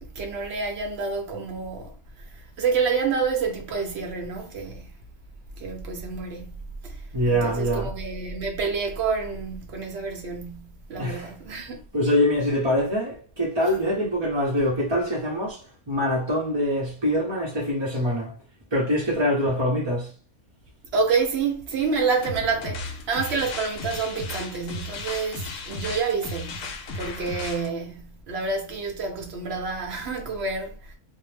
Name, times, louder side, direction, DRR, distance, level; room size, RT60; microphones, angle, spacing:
voice 1, 0.0-1.9 2.6-4.9 5.6-6.5 6.8-7.0 7.3-11.8 20.9-30.9, right 5 dB, 55° right, 0.8 m, -28 dB
voice 2, 7.1-7.9 11.0-11.6 11.9-18.4 18.7-20.1, equal, 25° right, 0.6 m, -24 dB
sound 1, 22.2-27.7, left 2 dB, 65° left, 1.0 m, -35 dB
2.7 x 2.0 x 3.2 m
omnidirectional pair, 1.6 m